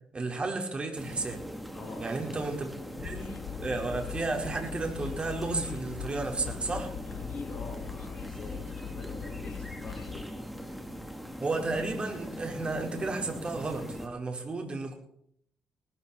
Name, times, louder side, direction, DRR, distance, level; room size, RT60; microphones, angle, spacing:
voice 1, 0.1-1.5 2.0-6.9 11.4-14.9, right 3 dB, 35° right, 2 dB, 4.8 m, -33 dB
sound 1, 1.0-14.1, equal, ahead, 3.0 m, -41 dB
voice 2, 1.7-2.5 7.1-10.4, left 3 dB, 35° left, -1 dB, 4.1 m, -45 dB
Train, 3.0-10.2, left 11 dB, 75° left, 0.7 m, -41 dB
19.5 x 13.5 x 4.5 m, 0.71 s
supercardioid pair, 55°, 3 cm